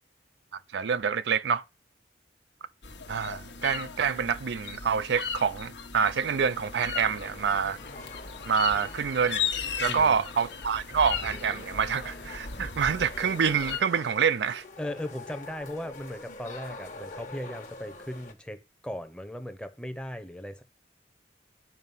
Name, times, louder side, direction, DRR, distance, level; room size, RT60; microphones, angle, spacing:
voice 1, 0.7-1.6 3.1-7.8 8.5-9.4 9.8-14.6, right 6 dB, 75° right, 0.4 m, -27 dB
sound 1, 2.8-13.8, left 6 dB, 80° left, 1.2 m, -37 dB
sound 2, 7.1-18.3, left 3 dB, 45° left, 1.2 m, -45 dB
voice 2, 9.9-10.2 14.8-20.6, left 1 dB, 5° left, 0.8 m, -38 dB
9.6 x 5.0 x 5.5 m
head